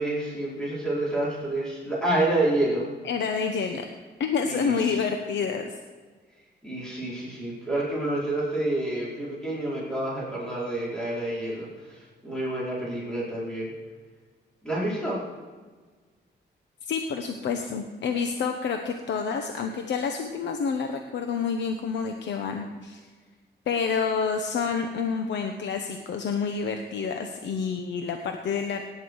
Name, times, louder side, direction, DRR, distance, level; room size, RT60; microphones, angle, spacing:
voice 1, 0.0-2.8 4.5-5.0 6.6-13.7 14.6-15.2, right 1 dB, 5° left, -7 dB, 4.7 m, -28 dB
voice 2, 3.0-3.8 4.2-5.8 16.8-23.0 23.7-28.8, left 5 dB, 75° left, 5 dB, 1.0 m, -28 dB
18.0 x 9.7 x 4.8 m, 1.4 s
cardioid pair, 115°, 19 cm